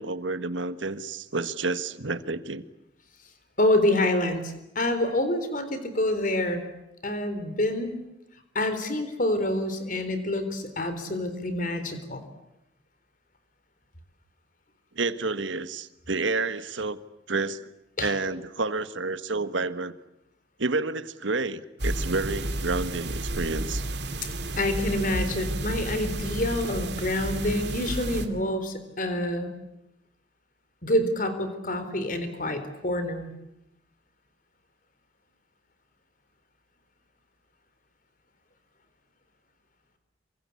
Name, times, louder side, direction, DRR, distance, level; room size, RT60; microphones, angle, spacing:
voice 1, 0.0-2.6 14.9-17.0 17.3-17.7 18.0-19.9 20.6-23.8, right 3 dB, 85° right, 12 dB, 1.5 m, -29 dB
voice 2, 3.6-6.6 7.0-7.9 8.5-12.2 18.0-18.1 24.6-29.5 30.8-33.3, left 1 dB, 45° left, 10 dB, 3.9 m, -27 dB
sound 1, 21.8-28.3, right 1 dB, 60° right, 2.6 m, -31 dB
27.0 x 24.5 x 8.5 m, 0.85 s
head